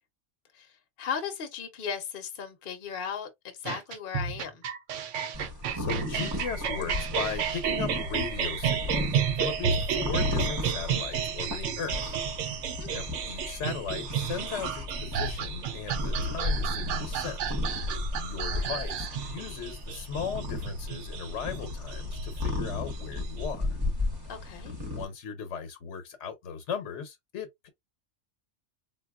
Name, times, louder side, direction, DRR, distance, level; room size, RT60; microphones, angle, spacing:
voice 1, 0.5-4.6 12.8-13.0 18.5-18.8 24.3-24.8, left 7 dB, 55° left, 0.9 m, -37 dB
sound 1, 3.7-23.5, right 7 dB, 80° right, 0.9 m, -32 dB
sound 2, 5.3-25.0, left 2 dB, 25° right, 0.8 m, -34 dB
voice 2, 5.7-12.0 12.9-17.4 18.1-23.7 24.7-27.7, left 6 dB, 75° left, 1.1 m, -37 dB
4.0 x 2.3 x 2.3 m
omnidirectional pair, 1.2 m